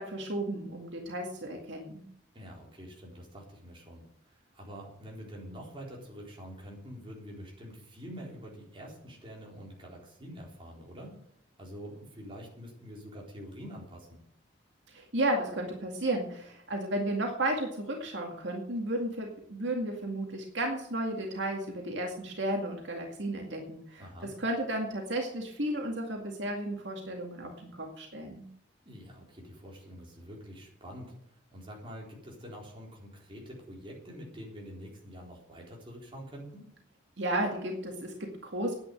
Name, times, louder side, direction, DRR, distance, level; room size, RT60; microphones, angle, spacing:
voice 1, 0.0-2.1 14.9-24.0 24.4-28.5 37.2-38.7, right 1 dB, 70° right, 1 dB, 2.1 m, -33 dB
voice 2, 2.3-11.2 11.6-14.2 24.0-24.3 28.8-36.7, equal, 25° right, -2 dB, 4.1 m, -46 dB
10.0 x 9.0 x 9.0 m, 0.71 s
head